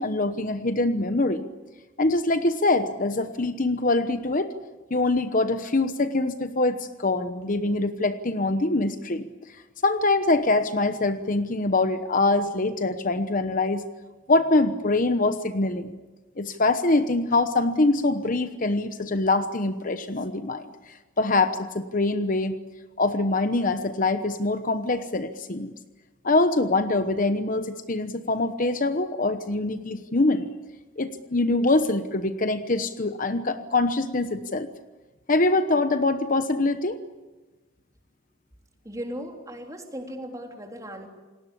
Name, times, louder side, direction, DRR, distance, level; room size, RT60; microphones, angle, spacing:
voice 1, 0.0-1.4 2.0-4.5 4.9-9.3 9.8-13.8 14.3-15.9 16.4-22.6 23.0-25.7 26.2-30.5 31.0-34.7 35.3-37.0, left 2 dB, 40° left, 10 dB, 1.0 m, -24 dB
voice 2, 38.8-41.1, equal, 15° right, 3 dB, 3.5 m, -37 dB
28.5 x 19.5 x 8.5 m, 1.2 s
head